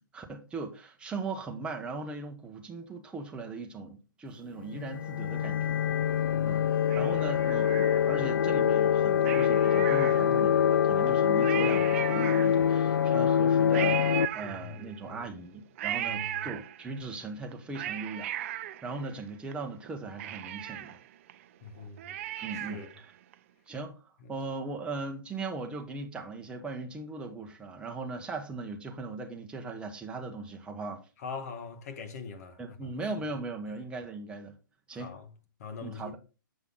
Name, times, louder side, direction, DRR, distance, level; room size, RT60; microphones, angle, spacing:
voice 1, 0.1-5.8 6.4-6.6 6.9-21.0 22.4-22.8 23.7-31.0 32.6-34.5 34.9-35.1 35.8-36.2, right 3 dB, 10° right, 1.3 m, -39 dB
sound 1, 4.7-14.3, left 9 dB, 80° left, 0.5 m, -25 dB
voice 2, 6.3-6.7 14.4-15.3 16.0-16.5 21.6-22.2 22.5-22.9 24.2-24.3 31.2-32.9 34.9-35.3 35.6-36.2, left 5 dB, 50° left, 1.6 m, -43 dB
Cat, 6.9-8.4 9.2-10.6 11.1-11.2 11.4-12.9 13.7-15.1 15.8-17.1 17.5-19.5 19.9-20.0 20.2-23.0 23.3-23.4, right 13 dB, 40° right, 0.5 m, -37 dB
7.7 x 5.5 x 4.0 m
hypercardioid pair, 145°, 11 cm